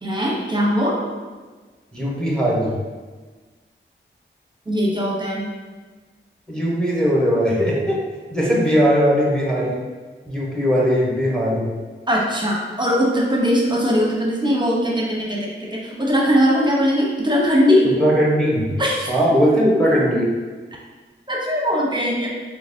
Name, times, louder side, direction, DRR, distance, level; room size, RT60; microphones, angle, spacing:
voice 1, 0.0-1.0 4.7-5.5 12.1-17.9 18.8-19.1 21.3-22.3, equal, 20° right, -3 dB, 0.8 m, -20 dB
voice 2, 1.9-2.7 6.5-8.0 8.3-9.8 10.3-11.7 18.0-18.7 19.1-20.3, equal, 5° left, -4 dB, 1.0 m, -19 dB
3.9 x 3.0 x 2.7 m, 1.4 s
cardioid pair, 45°, 21 cm